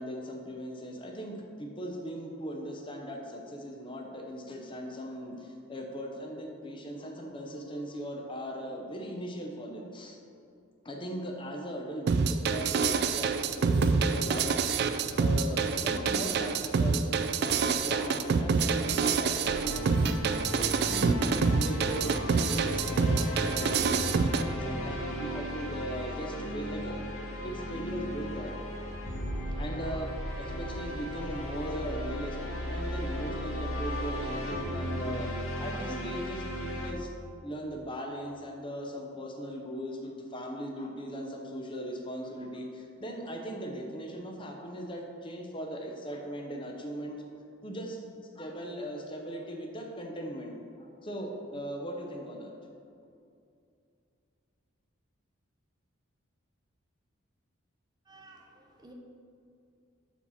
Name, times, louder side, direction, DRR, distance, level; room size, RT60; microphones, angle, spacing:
voice 1, 0.0-10.2 10.8-14.7 15.2-17.0 17.4-21.1 21.5-27.0 27.4-28.9 29.6-30.1 30.4-37.1 37.4-47.2 47.6-48.0 48.4-52.5, equal, 25° left, 1 dB, 0.7 m, -39 dB
sound 1, 12.1-24.4, right 5 dB, 50° right, 0.3 m, -27 dB
sound 2, 19.4-36.9, equal, 80° left, 1.2 m, -35 dB
voice 2, 58.1-58.9, right 2 dB, 20° right, 1 dB, 0.7 m, -54 dB
7.1 x 4.2 x 5.6 m, 2.5 s
head